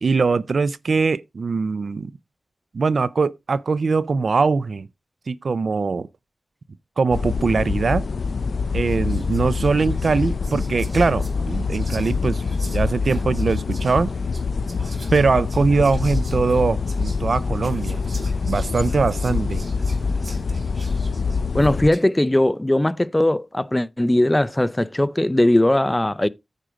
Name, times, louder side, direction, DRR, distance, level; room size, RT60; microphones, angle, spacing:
voice 1, 0.0-2.1 2.7-4.9 5.3-6.1 7.0-8.1 8.7-12.4 12.7-14.1 15.1-18.0 18.5-19.6, right 4 dB, 75° right, 0.4 m, -21 dB
sound 1, 7.1-21.9, left 4 dB, 85° left, 0.4 m, -25 dB
Whispering, 8.3-8.5 8.8-22.1, right 2 dB, 50° right, 3.2 m, -45 dB
voice 2, 21.5-26.3, left 1 dB, 15° left, 0.5 m, -19 dB
9.2 x 5.0 x 4.9 m
wide cardioid pair, 110°, 0 cm